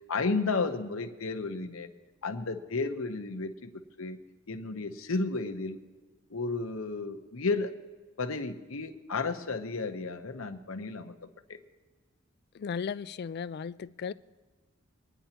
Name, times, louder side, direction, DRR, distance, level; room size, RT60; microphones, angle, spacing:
voice 1, 0.1-1.9 2.2-3.7 4.0-4.2 4.5-5.8 6.3-7.7 8.2-11.1 11.5-11.6, left 3 dB, 80° left, 0.9 m, -32 dB
voice 2, 12.5-14.1, left 6 dB, 50° left, 0.3 m, -36 dB
25.0 x 10.0 x 2.9 m
head